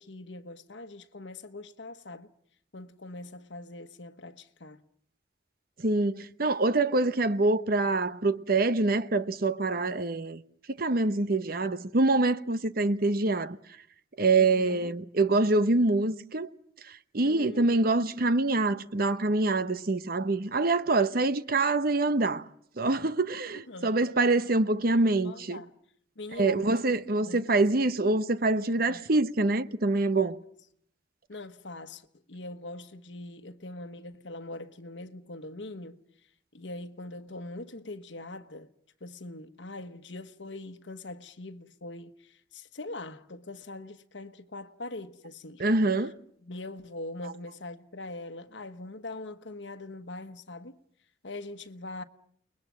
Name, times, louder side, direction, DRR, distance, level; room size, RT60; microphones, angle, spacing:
voice 1, 0.0-2.3 2.7-4.8 14.4-14.9 17.2-17.8 23.7-24.0 25.2-25.7 26.2-26.7 27.2-27.7 28.9-29.1 31.3-36.0 36.5-38.7 39.0-45.7 46.0-46.1 46.4-50.8 51.2-52.0, left 2 dB, 90° left, 1.3 m, -42 dB
voice 2, 5.8-10.4 10.7-13.6 14.2-16.5 16.9-22.5 22.8-25.6 26.4-30.4 45.6-46.1, right 2 dB, 55° right, 1.0 m, -25 dB
30.0 x 21.5 x 7.4 m
head